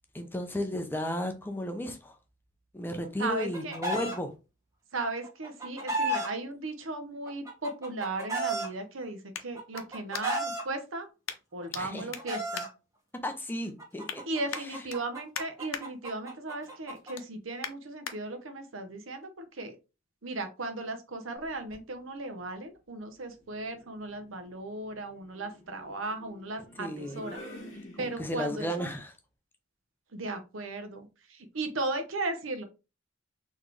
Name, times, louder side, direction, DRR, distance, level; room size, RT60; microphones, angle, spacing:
voice 1, 0.1-2.2 2.7-4.3 11.7-12.1 13.2-14.2 14.5-14.8 26.8-27.2 28.0-29.1, left 1 dB, 10° left, 0.5 m, -34 dB
Chicken rooster, 3.0-4.2 5.2-6.3 7.3-8.7 9.6-10.6 11.6-12.7 13.8-17.1, right 1 dB, 15° right, 1.2 m, -33 dB
voice 2, 3.2-3.7 4.9-11.1 11.5-12.7 14.3-19.8 20.2-27.4 28.0-28.9 30.1-32.6, right 2 dB, 75° right, 0.8 m, -36 dB
sound 1, 6.5-10.6 11.2-11.8 12.1-13.4 13.8-14.2 14.5-15.8 16.3-16.5 16.9-18.2 18.7-18.8, left 8 dB, 75° left, 0.6 m, -42 dB
sound 2, 21.4-21.9 23.3-28.6, equal, 35° left, 1.5 m, -50 dB
4.0 x 3.1 x 3.1 m
head